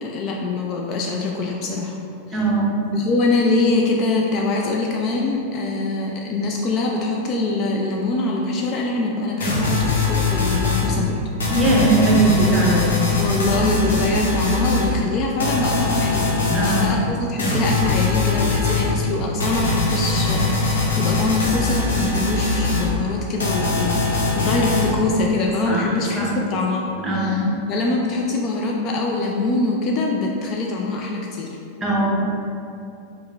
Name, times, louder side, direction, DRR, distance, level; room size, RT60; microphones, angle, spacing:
voice 1, 0.0-2.0 2.3-2.4 2.9-11.2 13.2-27.4 27.7-31.6, left 3 dB, 35° left, 0 dB, 0.3 m, -24 dB
voice 2, 2.3-2.8 11.5-13.1 16.5-17.0 25.7-26.3 27.0-27.5 31.8-32.3, right 1 dB, 15° right, -4 dB, 0.8 m, -20 dB
sound 1, 9.4-10.9 11.4-14.9 15.4-16.9 17.4-18.9 19.4-22.9 23.4-24.9, left 2 dB, 65° left, 0.8 m, -21 dB
4.7 x 2.1 x 3.4 m, 2.7 s
figure-of-eight pair, 90°, 0 cm